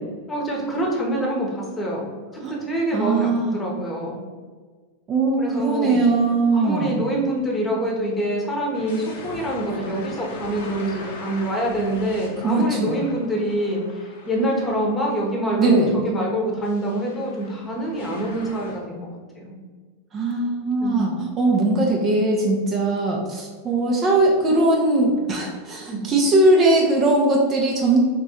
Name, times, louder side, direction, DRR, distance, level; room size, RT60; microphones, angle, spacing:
voice 1, 0.3-2.1 2.5-4.2 5.4-6.0 6.5-19.0 19.3-19.6 20.8-21.1 22.6-22.7 25.9-26.0, right 1 dB, 15° left, -2 dB, 1.1 m, -26 dB
voice 2, 2.9-3.6 5.1-7.0 12.4-13.0 15.6-15.9 20.1-28.0, right 2 dB, 25° right, -1 dB, 0.7 m, -20 dB
sound 1, 8.7-15.3 15.7-15.8 16.6-18.8, left 2 dB, 55° left, 0.8 m, -39 dB
3.5 x 3.2 x 4.2 m, 1.5 s
figure-of-eight pair, 90°, 0 cm